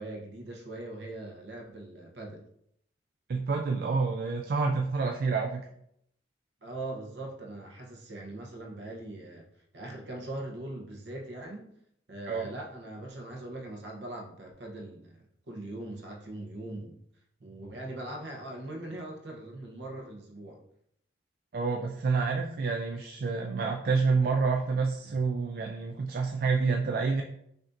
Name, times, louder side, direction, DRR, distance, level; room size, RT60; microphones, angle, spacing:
voice 1, 0.0-2.4 6.6-9.5 9.7-11.7 12.1-17.0 17.4-20.6 25.0-25.2, right 1 dB, 65° right, 0 dB, 0.8 m, -41 dB
voice 2, 3.3-5.6 12.3-12.5 21.5-27.2, right 4 dB, 50° right, 2 dB, 0.3 m, -28 dB
5.8 x 2.6 x 2.5 m, 0.73 s
head